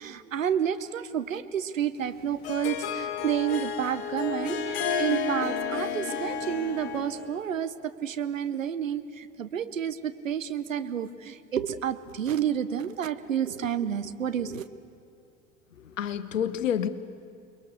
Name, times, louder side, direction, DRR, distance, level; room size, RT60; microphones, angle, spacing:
voice 1, 0.0-14.6, right 9 dB, 75° right, 1.0 m, -30 dB
Harp, 2.0-7.4, left 6 dB, 50° left, 1.8 m, -31 dB
voice 2, 15.8-16.9, left 9 dB, 75° left, 1.1 m, -28 dB
29.0 x 21.5 x 6.7 m
figure-of-eight pair, 75°, 39 cm